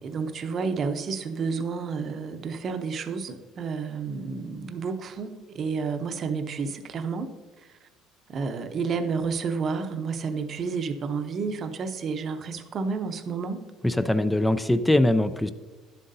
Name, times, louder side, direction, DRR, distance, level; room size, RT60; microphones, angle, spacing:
voice 1, 0.0-7.3 7.6-7.8 8.3-13.6, right 5 dB, 40° right, 8 dB, 0.7 m, -30 dB
voice 2, 13.8-15.5, left 1 dB, 5° left, 12 dB, 0.3 m, -22 dB
11.0 x 7.4 x 2.6 m, 1.3 s
cardioid pair, 125°, 0 cm